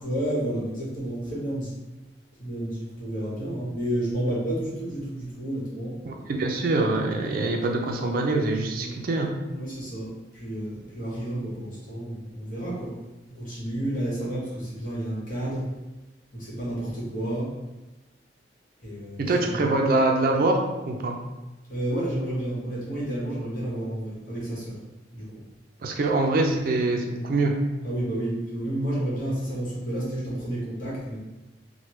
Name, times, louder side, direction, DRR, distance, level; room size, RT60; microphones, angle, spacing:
voice 1, 0.0-1.7 2.4-6.0 8.7-9.0 9.5-13.0 13.3-15.7 16.3-17.6 18.8-19.7 21.7-24.8 25.1-25.4 27.8-31.2, right 1 dB, 50° left, -7 dB, 1.2 m, -31 dB
voice 2, 6.0-9.3 19.2-21.2 25.8-27.5, right 2 dB, 50° right, 2 dB, 0.4 m, -24 dB
3.2 x 2.1 x 3.0 m, 1.1 s
head